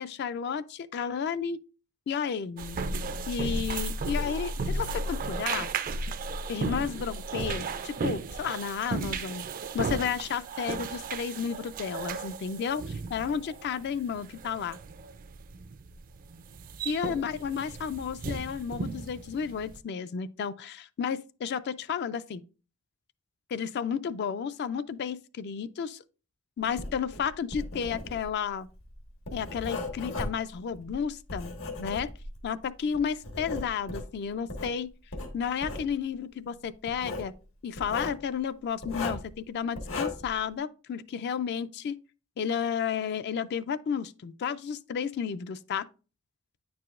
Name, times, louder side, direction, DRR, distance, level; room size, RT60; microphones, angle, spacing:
voice 1, 0.0-1.6 2.1-2.8 3.3-5.7 6.5-9.5 9.7-14.8 16.8-22.4 23.5-26.0 26.6-28.7 29.3-31.5 31.8-32.1 32.4-34.9 35.3-37.3 37.6-41.9 42.4-45.9, left 7 dB, 55° left, 0.3 m, -32 dB
sound 1, 2.6-19.8, right 3 dB, 40° right, 0.4 m, -35 dB
sound 2, 4.1-6.3 6.5-6.7 7.0-7.2 7.5-7.7 8.0-8.2 8.4-9.1 9.4-10.3, right 2 dB, 70° right, 0.8 m, -52 dB
Writing, 26.7-32.5 32.9-34.7 35.1-35.9 36.9-37.3 37.8-38.2 38.8-39.3 39.8-40.4, left 2 dB, 85° left, 1.3 m, -37 dB
9.1 x 4.7 x 2.4 m
head